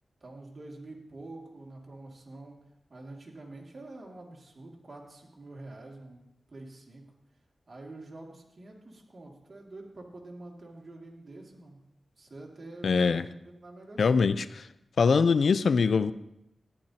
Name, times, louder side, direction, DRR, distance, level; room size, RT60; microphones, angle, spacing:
voice 1, 0.2-2.6 2.9-7.1 7.7-11.8 12.2-14.4, right 2 dB, 45° right, -1 dB, 2.3 m, -47 dB
voice 2, 12.8-13.2 14.0-14.5 15.0-16.1, left 5 dB, 75° left, 14 dB, 0.4 m, -22 dB
13.5 x 11.0 x 2.8 m, 0.81 s
wide cardioid pair, 80°, 0 cm